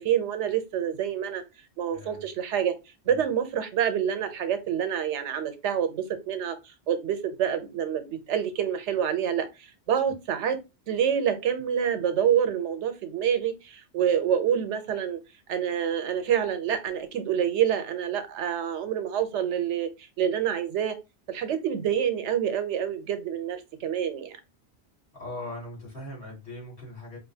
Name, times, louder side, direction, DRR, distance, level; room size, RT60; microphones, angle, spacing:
voice 1, 0.0-1.4 1.8-2.7 3.1-6.5 6.9-9.5 9.9-10.6 10.9-15.2 15.5-19.9 20.2-21.0 21.3-24.4, right 9 dB, 85° right, 9 dB, 1.0 m, -27 dB
voice 2, 1.9-2.3 3.0-3.2 25.1-27.2, left 1 dB, 70° left, -5 dB, 2.6 m, -40 dB
4.4 x 2.5 x 2.7 m, 0.25 s
omnidirectional pair, 1.2 m